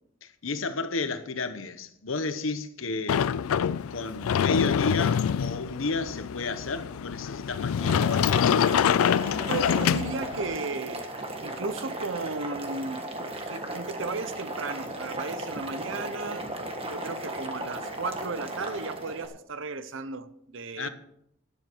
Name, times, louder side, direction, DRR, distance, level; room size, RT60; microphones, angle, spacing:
voice 1, 0.2-3.3 3.9-8.1 20.8-20.9, left 3 dB, 70° left, 1.0 m, -32 dB
Sliding door, 3.1-10.6, left 8 dB, 85° left, 0.4 m, -25 dB
Boiling, 7.7-19.3, right 1 dB, 25° right, 1.5 m, -36 dB
voice 2, 9.5-11.1 11.4-16.5 16.9-20.9, right 3 dB, 65° right, 0.8 m, -35 dB
12.0 x 10.5 x 4.7 m
head